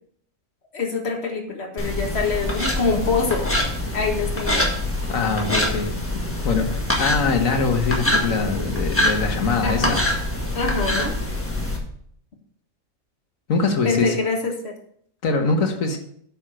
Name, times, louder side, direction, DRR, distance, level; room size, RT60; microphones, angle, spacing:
voice 1, 0.7-3.5 3.9-4.7 9.6-10.0 10.6-11.2 13.8-14.8, left 4 dB, 50° left, 2 dB, 1.8 m, -25 dB
sound 1, 1.8-11.8, left 1 dB, 10° left, 1.4 m, -25 dB
voice 2, 5.1-10.1 13.5-14.2 15.2-16.0, left 4 dB, 80° left, 4 dB, 1.7 m, -23 dB
8.9 x 6.1 x 5.0 m, 0.65 s
omnidirectional pair, 1.4 m